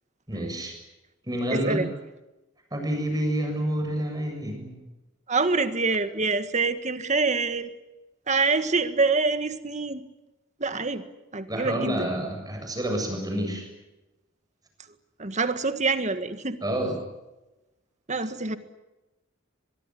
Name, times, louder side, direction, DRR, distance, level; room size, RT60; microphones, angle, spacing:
voice 1, 0.3-0.8 1.3-1.9 2.7-4.8 11.5-13.7 16.6-17.0, right 1 dB, 20° right, 4 dB, 7.4 m, -28 dB
voice 2, 1.5-1.9 5.3-7.7 8.3-10.0 10.6-11.0 11.3-12.1 15.2-16.6 18.1-18.6, right 3 dB, 35° right, 10 dB, 1.7 m, -25 dB
24.0 x 23.0 x 9.2 m, 1.0 s
head